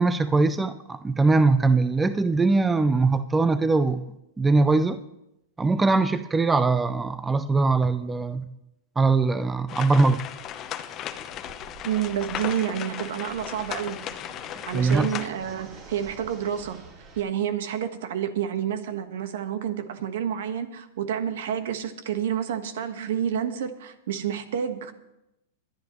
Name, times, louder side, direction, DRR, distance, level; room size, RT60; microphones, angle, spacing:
voice 1, 0.0-4.0 4.4-5.0 5.6-8.4 9.0-10.2 14.7-15.1, right 3 dB, 10° right, 0.5 m, -21 dB
sound 1, 9.7-15.3, left 10 dB, 30° left, 0.8 m, -36 dB
Fixed-wing aircraft airplane, 9.8-17.2, right 3 dB, 35° right, 4.4 m, -48 dB
voice 2, 11.8-14.0 14.6-16.8 17.2-24.9, right 9 dB, 75° right, 1.4 m, -29 dB
23.0 x 10.5 x 3.1 m
hypercardioid pair, 135°, 0 cm